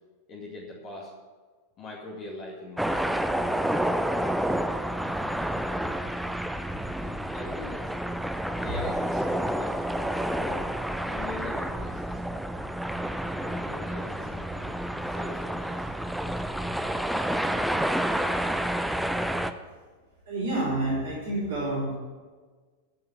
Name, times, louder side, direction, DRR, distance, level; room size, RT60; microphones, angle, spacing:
voice 1, 0.3-1.1 1.8-3.1 7.0-7.9 8.6-10.7 11.0-12.2 13.3-15.9, left 2 dB, 35° left, -3 dB, 2.3 m, -42 dB
sound 1, 2.8-19.5, right 1 dB, ahead, 0.6 m, -29 dB
voice 2, 20.3-21.9, right 2 dB, 60° right, -6 dB, 4.6 m, -28 dB
14.5 x 5.8 x 8.2 m, 1.4 s
figure-of-eight pair, 90°, 0 cm